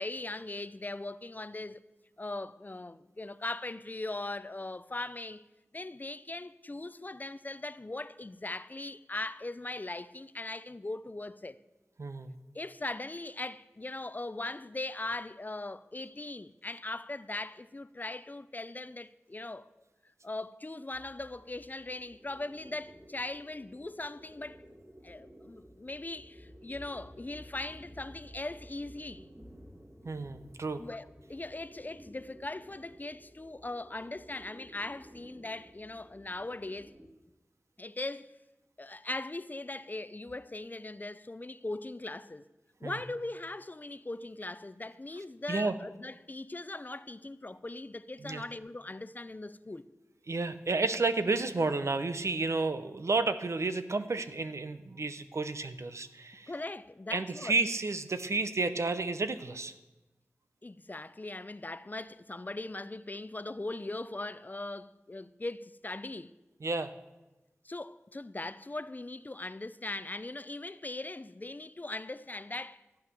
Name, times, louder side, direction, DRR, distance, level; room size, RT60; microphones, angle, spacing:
voice 1, 0.0-1.8 2.2-5.4 5.7-11.6 12.5-19.8 20.2-24.6 25.0-29.3 30.8-36.9 37.8-38.3 38.8-42.5 42.8-49.9 56.5-57.6 60.6-66.3 67.6-72.8, left 2 dB, 35° left, 0.5 m, -40 dB
voice 2, 12.0-12.3 30.0-30.8 42.8-42.9 45.5-45.7 48.2-48.4 50.3-56.5 57.1-59.7 66.6-66.9, right 3 dB, 70° right, 0.8 m, -31 dB
sound 1, 20.9-37.1, equal, 30° right, 2.4 m, -54 dB
14.0 x 9.3 x 6.8 m
wide cardioid pair, 55°, 5 cm